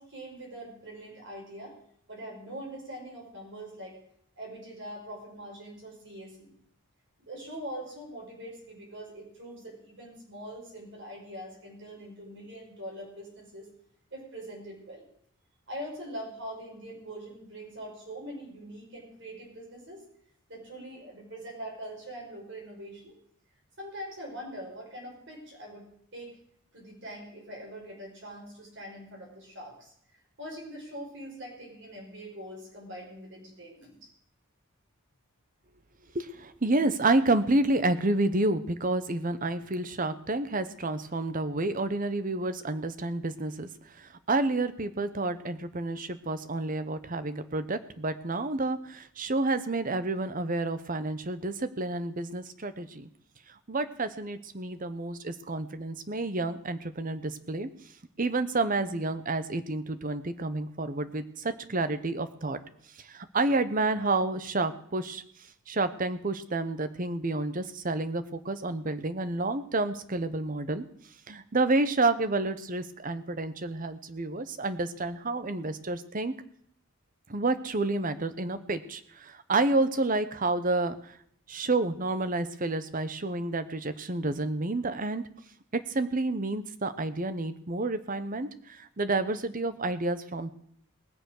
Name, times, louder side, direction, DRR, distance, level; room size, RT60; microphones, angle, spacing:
voice 1, 0.0-1.7 2.1-4.0 4.4-6.5 7.3-13.7 14.1-15.0 15.7-20.0 20.5-23.2 23.8-25.9 26.1-26.4 26.7-29.9 30.4-34.1, right 1 dB, 55° right, -2 dB, 5.6 m, -43 dB
voice 2, 36.1-43.7 44.0-53.1 53.7-57.7 58.2-62.6 63.1-65.2 65.7-70.8 71.3-76.3 77.3-80.9 81.5-85.2 85.7-90.5, right 2 dB, 40° right, 11 dB, 0.9 m, -29 dB
19.5 x 7.0 x 6.5 m, 0.66 s
head